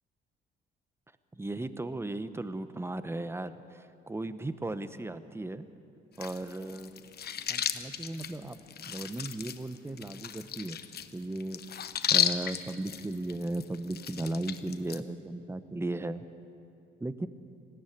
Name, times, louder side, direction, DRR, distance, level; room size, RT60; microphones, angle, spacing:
voice 1, 1.3-5.7 6.2-7.0 7.5-8.6 8.8-10.8 11.1-11.6 12.1-16.2 17.0-17.3, right 2 dB, 10° right, 13 dB, 1.0 m, -36 dB
sound 1, 6.2-15.0, left 8 dB, 55° left, 1.0 m, -34 dB
20.0 x 15.0 x 9.3 m, 2.5 s
cardioid pair, 90°, 20 cm